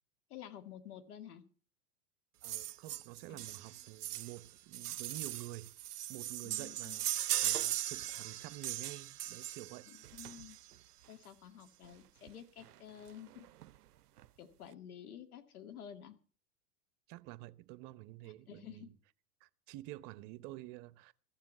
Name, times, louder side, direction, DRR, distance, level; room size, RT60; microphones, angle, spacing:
voice 1, 0.3-1.4 3.3-3.4 6.4-7.0 9.9-10.6 11.1-13.5 14.4-16.2 18.2-18.9, left 9 dB, 75° left, 2.1 m, -51 dB
voice 2, 2.4-5.7 6.1-7.1 7.4-9.9 17.1-18.9 19.4-21.1, right 17 dB, 45° right, 0.9 m, -49 dB
sound 1, 2.4-10.8 11.8-11.9 12.3-12.4 12.6-12.7 13.1-13.7 14.2-14.3, right 13 dB, 80° right, 0.6 m, -39 dB
15.0 x 7.5 x 8.3 m
hypercardioid pair, 95°, 45 cm